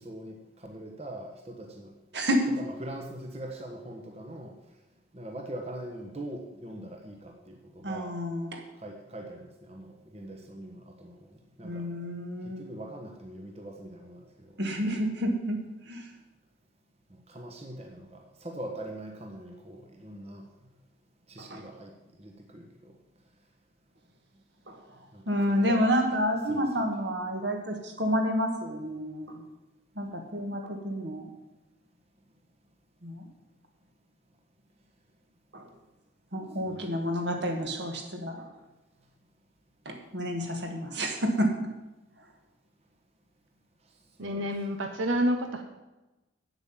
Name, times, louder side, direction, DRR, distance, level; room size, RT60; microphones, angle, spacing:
voice 1, 0.0-1.9 2.6-4.6 5.1-8.1 8.8-11.9 12.4-14.6 17.1-20.5 21.3-23.0 25.1-25.3 25.6-25.9 26.5-26.7 36.6-37.0 44.2-44.5, right 1 dB, 30° right, 2 dB, 1.2 m, -42 dB
voice 2, 2.1-2.6 7.8-8.6 11.6-12.6 14.6-16.1 21.4-21.6 24.7-24.8 25.3-29.4 30.0-31.3 33.0-33.3 35.5-35.7 36.3-38.5 39.9-41.7, equal, 60° right, 3 dB, 1.8 m, -29 dB
voice 3, 44.2-45.6, equal, 80° right, 5 dB, 1.0 m, -28 dB
8.7 x 8.0 x 7.3 m, 1.1 s
head